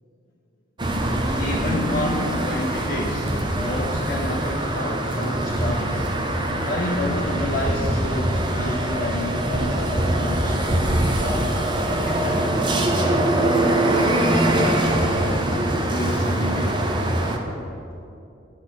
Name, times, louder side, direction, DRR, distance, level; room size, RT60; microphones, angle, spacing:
sound 1, 0.8-17.4, right 1 dB, 25° right, 0.6 m, -23 dB
voice 1, 1.4-6.1 6.6-11.6 12.0-15.5 15.9-16.8, left 1 dB, 45° left, -2 dB, 0.6 m, -30 dB
10.0 x 4.0 x 6.3 m, 2.7 s
head